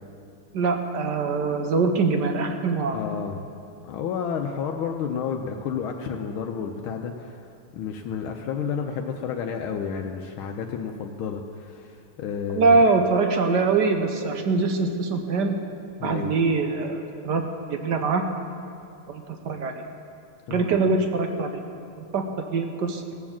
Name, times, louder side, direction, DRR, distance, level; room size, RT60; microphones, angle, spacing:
voice 1, 0.5-3.0 12.5-15.6 16.0-17.4 17.7-18.2 19.1-19.7 20.5-21.6 22.1-23.0, right 4 dB, 65° right, 5 dB, 1.3 m, -23 dB
voice 2, 2.9-3.4 3.8-7.4 7.7-12.8 16.0-16.3 20.5-20.9, left 6 dB, 80° left, 3 dB, 1.5 m, -31 dB
16.5 x 7.3 x 7.2 m, 2.5 s
omnidirectional pair, 2.3 m